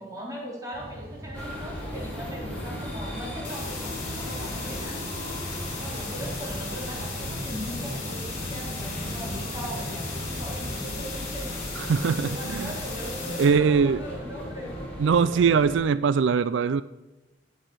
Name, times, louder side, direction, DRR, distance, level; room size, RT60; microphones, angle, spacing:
voice 1, 0.0-5.0 5.7-11.5 12.1-14.8, equal, 20° right, -2 dB, 3.6 m, -39 dB
sound 1, 0.7-10.8, equal, 50° right, 2.7 m, -40 dB
sound 2, 1.3-15.8, equal, 5° left, 5.3 m, -36 dB
sound 3, 3.4-13.4, left 4 dB, 35° left, 5.7 m, -37 dB
voice 2, 11.8-12.7 13.4-14.0 15.0-16.8, right 6 dB, 75° right, 15 dB, 0.4 m, -22 dB
15.0 x 10.0 x 6.3 m, 1.1 s
head